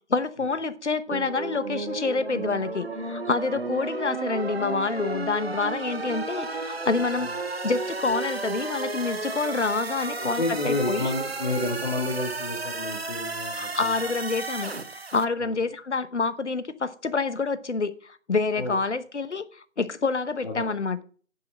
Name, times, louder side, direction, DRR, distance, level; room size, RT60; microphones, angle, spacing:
voice 1, 0.1-7.3 7.6-11.1 13.5-14.7 15.1-21.0, left 4 dB, 60° left, 13 dB, 1.0 m, -27 dB
sound 1, 1.1-15.2, right 3 dB, 50° right, 1.0 m, -33 dB
voice 2, 10.1-13.9 15.4-15.5 18.6-18.8 20.4-20.8, left 2 dB, 40° left, -1 dB, 1.7 m, -30 dB
9.8 x 5.8 x 6.1 m, 0.43 s
figure-of-eight pair, 180°, 39 cm